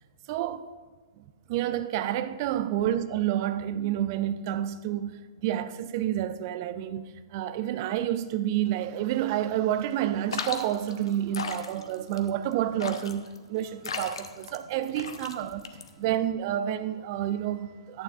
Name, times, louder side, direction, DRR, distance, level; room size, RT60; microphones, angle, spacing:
voice 1, 0.3-0.7 1.5-15.7 16.0-18.0, right 11 dB, 40° right, 0.5 m, -29 dB
sound 1, 10.3-16.3, left 5 dB, 65° left, 0.7 m, -37 dB
14.0 x 9.0 x 2.4 m
figure-of-eight pair, 115°, 3 cm